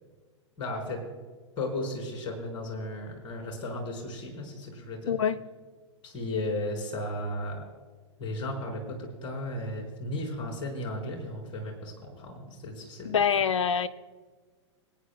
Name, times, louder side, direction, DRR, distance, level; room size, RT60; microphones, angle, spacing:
voice 1, 0.6-1.0 1.6-5.2 6.0-7.7 8.2-13.2, left 1 dB, 30° left, 0 dB, 4.3 m, -35 dB
voice 2, 5.1-5.4 13.0-13.9, left 7 dB, 80° left, 13 dB, 0.6 m, -25 dB
25.5 x 9.3 x 2.2 m, 1.4 s
hypercardioid pair, 105°, 16 cm